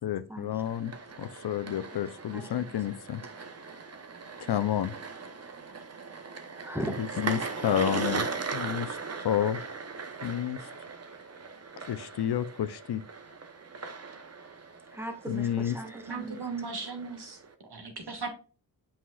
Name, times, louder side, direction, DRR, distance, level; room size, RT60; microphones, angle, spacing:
voice 1, 0.0-0.9 1.2-3.2 4.4-5.0 7.0-8.3 8.5-9.6 10.2-10.7 11.9-13.0 15.3-15.8, left 10 dB, 70° left, 0.6 m, -30 dB
sound 1, 0.6-17.5, right 4 dB, 35° right, 0.9 m, -39 dB
voice 2, 2.3-2.7 6.6-7.0 14.9-16.4, right 1 dB, 5° right, 1.5 m, -37 dB
voice 3, 16.1-18.3, right 4 dB, 70° right, 2.0 m, -37 dB
7.4 x 5.7 x 2.4 m
wide cardioid pair, 85°, 41 cm